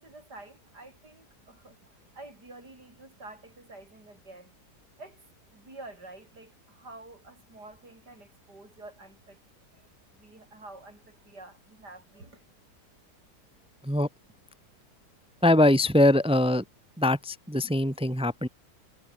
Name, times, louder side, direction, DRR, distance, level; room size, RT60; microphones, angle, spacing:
voice 1, 0.0-1.8 2.1-4.5 5.0-5.2 5.5-9.4 10.1-12.4, right 2 dB, 90° right, 7.4 m, -48 dB
voice 2, 15.4-16.6 17.0-18.5, left 1 dB, 5° right, 1.4 m, -22 dB
omnidirectional pair, 1.7 m